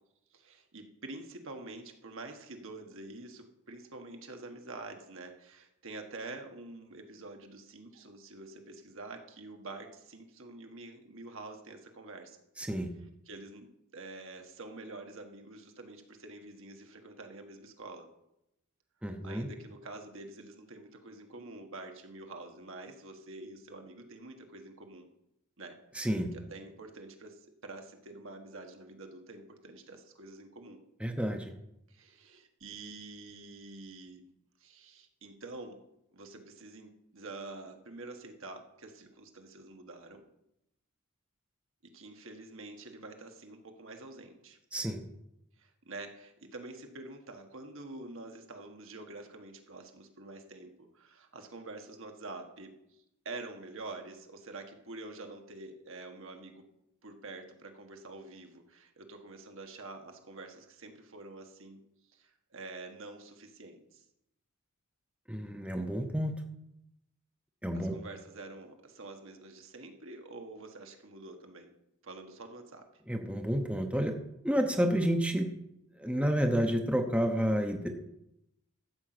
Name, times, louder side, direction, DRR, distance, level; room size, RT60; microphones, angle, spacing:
voice 1, 0.3-12.4 13.2-18.1 19.2-25.1 25.6-25.8 26.3-30.8 31.9-34.3 34.6-35.8 36.1-40.2 41.8-44.6 45.6-56.6 57.0-61.8 62.1-64.0 67.7-71.7 72.0-72.8, right 2 dB, 65° right, 4 dB, 1.5 m, -47 dB
voice 2, 12.6-12.9 19.0-19.5 25.9-26.3 31.0-31.5 44.7-45.0 65.3-66.4 67.6-67.9 73.1-74.2 74.4-75.5 76.0-78.0, equal, 5° right, 4 dB, 0.8 m, -30 dB
13.0 x 5.4 x 7.8 m, 0.83 s
head